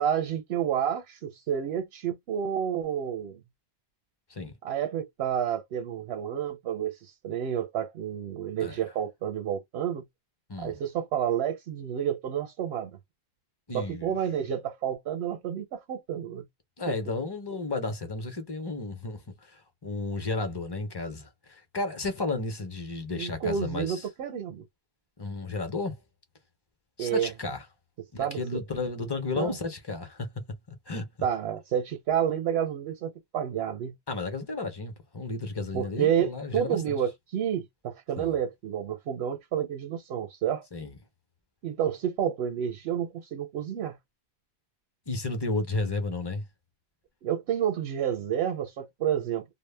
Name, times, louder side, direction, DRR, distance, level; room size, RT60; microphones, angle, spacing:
voice 1, 0.0-3.4 4.6-10.0 10.6-12.9 13.7-16.4 16.9-17.0 23.2-24.6 27.0-27.3 28.2-28.6 29.0-29.1 29.4-29.6 31.2-33.9 35.7-40.6 41.6-44.0 47.2-49.4, right 9 dB, 80° right, 0.8 m, -30 dB
voice 2, 8.6-8.9 10.5-10.8 13.7-14.1 16.8-24.0 25.2-26.0 27.0-27.6 28.1-30.3 30.9-31.1 34.1-37.0 38.2-38.3 40.7-40.9 45.1-46.5, left 3 dB, 30° left, 0.5 m, -33 dB
2.0 x 2.0 x 3.2 m
omnidirectional pair, 1.1 m